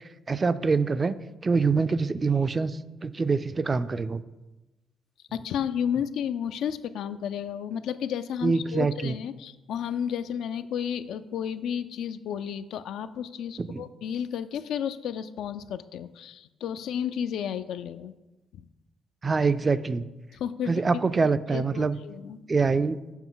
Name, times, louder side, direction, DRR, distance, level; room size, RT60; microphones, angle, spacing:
voice 1, 0.3-1.2 1.4-4.2 8.4-9.2 13.6-13.9 19.2-20.1 20.7-22.0 22.5-23.0, right 4 dB, 30° right, 14 dB, 0.3 m, -25 dB
voice 2, 5.3-18.1 18.5-18.6 20.3-20.8 21.5-22.4, left 8 dB, 80° left, 12 dB, 0.3 m, -32 dB
7.1 x 5.7 x 3.8 m, 1.1 s
cardioid pair, 90°, 0 cm